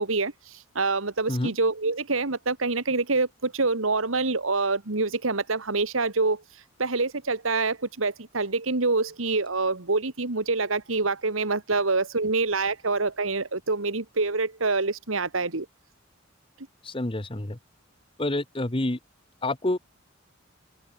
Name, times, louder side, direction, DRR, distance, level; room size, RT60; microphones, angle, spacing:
voice 1, 0.0-6.4 6.8-15.7, right 3 dB, 85° right, 2.0 m, -26 dB
voice 2, 16.8-17.6 18.2-19.0 19.4-19.8, left 1 dB, 25° left, 1.2 m, -28 dB
open air
head